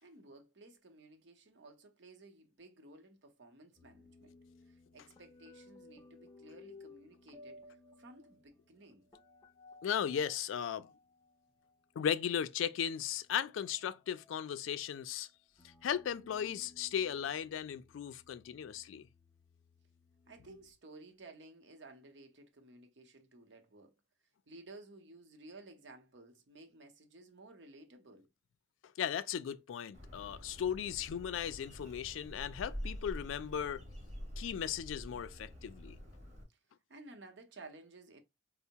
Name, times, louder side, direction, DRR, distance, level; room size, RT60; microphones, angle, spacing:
voice 1, 0.0-4.3 4.6-9.1 20.3-23.9 24.5-28.3 36.5-36.6 36.9-38.2, right 2 dB, 65° right, 0.7 m, -55 dB
sound 1, 3.8-12.0 12.6-20.7, left 2 dB, 20° left, 0.5 m, -60 dB
voice 2, 9.8-10.9 12.0-15.3 15.8-19.1 29.0-33.8 34.4-36.0, left 8 dB, 85° left, 0.3 m, -36 dB
Bird, 29.9-36.4, equal, 35° right, 0.9 m, -47 dB
4.3 x 2.0 x 2.8 m
head